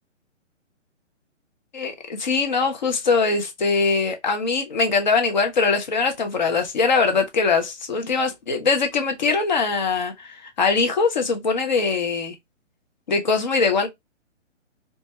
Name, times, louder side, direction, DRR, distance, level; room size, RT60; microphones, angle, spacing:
voice 1, 1.7-12.4 13.1-13.9, left 4 dB, 40° left, 0.4 m, -22 dB
2.2 x 2.0 x 2.7 m
hypercardioid pair, 165°, 37 cm